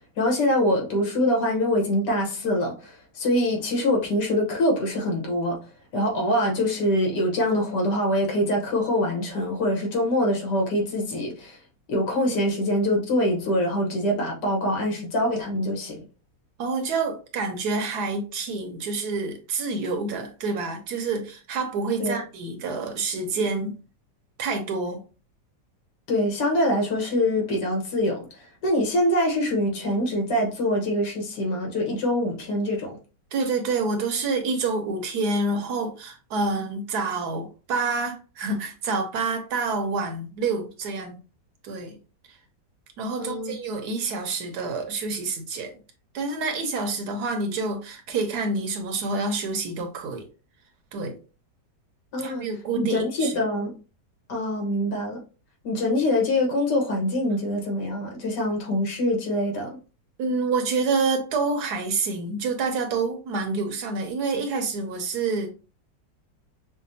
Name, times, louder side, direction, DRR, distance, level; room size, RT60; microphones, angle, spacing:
voice 1, 0.2-5.6 5.9-11.6 11.9-16.0 22.0-22.2 26.1-33.0 43.2-43.6 52.1-52.5 52.7-53.7 54.3-55.2 55.6-59.8, left 1 dB, 70° left, 1.7 m, -24 dB
voice 2, 16.6-23.7 24.4-25.0 33.3-41.2 41.6-42.0 42.3-42.4 43.0-45.8 46.1-50.3 50.9-51.2 52.2-53.4 60.2-65.5, right 3 dB, 70° right, 1.2 m, -27 dB
5.9 x 2.1 x 2.6 m
omnidirectional pair, 1.9 m